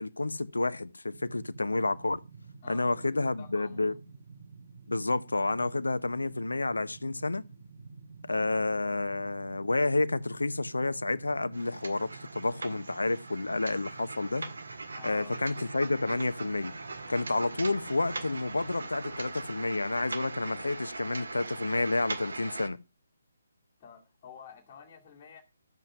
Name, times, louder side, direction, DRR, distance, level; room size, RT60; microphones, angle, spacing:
voice 1, 0.0-2.2 2.7-3.9 4.9-7.4 8.3-14.4 15.0-16.7 17.1-22.8, left 2 dB, 80° left, 0.8 m, -30 dB
sound 1, 1.1-18.8, right 4 dB, 45° right, 1.1 m, -50 dB
voice 2, 2.6-3.9 15.0-15.3 23.8-25.4, left 7 dB, 25° left, 2.2 m, -50 dB
sound 2, 11.5-22.7, right 3 dB, 70° right, 1.7 m, -41 dB
12.0 x 7.7 x 5.6 m
figure-of-eight pair, 145°, 0 cm